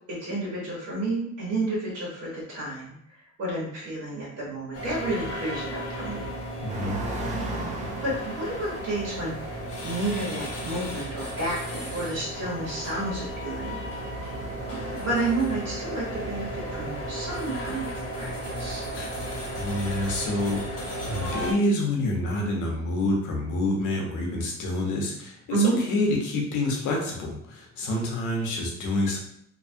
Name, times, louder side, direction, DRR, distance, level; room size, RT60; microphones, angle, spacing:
voice 1, 0.1-6.3 7.8-13.8 14.7-18.8 25.5-25.8, right 2 dB, 50° right, -6 dB, 1.3 m, -31 dB
sound 1, 4.7-21.5, equal, 50° left, 1.0 m, -34 dB
voice 2, 6.6-7.0 18.9-29.2, left 1 dB, 70° left, -1 dB, 0.9 m, -28 dB
sound 2, 6.7-14.7, right 2 dB, 25° right, 0.5 m, -39 dB
2.7 x 2.3 x 2.7 m, 0.70 s
cardioid pair, 120°, 31 cm